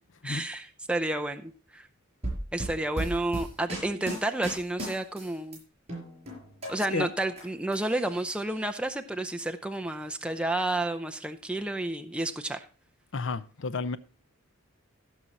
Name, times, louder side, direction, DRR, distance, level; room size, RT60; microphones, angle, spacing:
voice 1, 0.2-1.9 2.5-5.6 6.7-12.7, right 2 dB, 5° right, 0.6 m, -31 dB
sound 1, 2.2-5.6 5.9-7.4 7.7-8.6, right 1 dB, 30° right, 5.6 m, -36 dB
voice 2, 13.1-14.0, left 4 dB, 60° left, 0.7 m, -31 dB
16.5 x 6.1 x 4.1 m
head